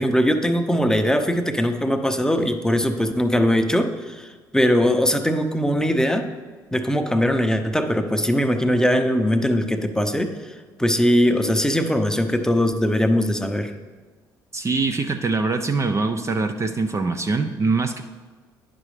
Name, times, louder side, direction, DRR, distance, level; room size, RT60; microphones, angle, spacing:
voice 1, 0.0-6.3 6.7-10.5 10.8-13.7, equal, 5° left, 6 dB, 0.7 m, -21 dB
voice 2, 14.5-18.0, right 3 dB, 30° right, 6 dB, 0.5 m, -23 dB
9.5 x 6.1 x 3.3 m, 1.4 s
hypercardioid pair, 60°, 10 cm